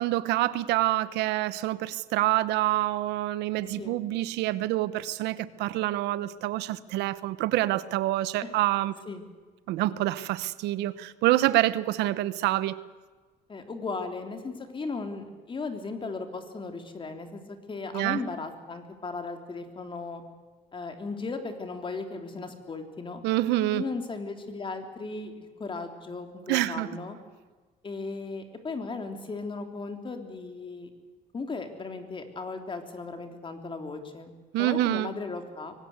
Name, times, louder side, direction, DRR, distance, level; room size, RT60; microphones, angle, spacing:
voice 1, 0.0-8.9 9.7-12.8 17.9-18.2 23.2-23.8 26.5-26.9 34.5-35.1, right 15 dB, 90° right, 1.0 m, -26 dB
voice 2, 13.5-20.2 20.7-23.2 23.7-27.2 27.8-30.9 31.3-34.3 34.6-35.7, left 3 dB, 30° left, 3.4 m, -36 dB
23.5 x 18.5 x 8.2 m
cardioid pair, 110°, 17 cm